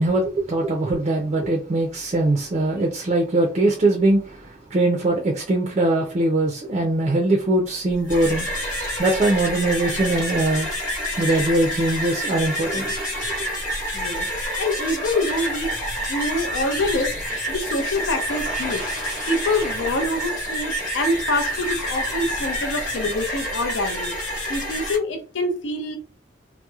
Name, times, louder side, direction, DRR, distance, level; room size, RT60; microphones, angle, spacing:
voice 1, 0.0-8.7 9.0-10.7 11.2-13.3, right 2 dB, 35° right, 0.4 m, -21 dB
sound 1, 7.9-25.0, equal, 45° left, 1.1 m, -28 dB
voice 2, 13.9-14.3 14.6-15.7 16.1-17.1 17.5-18.9 19.3-24.1 24.5-26.0, left 2 dB, 80° left, 0.6 m, -25 dB
2.8 x 2.0 x 2.3 m
head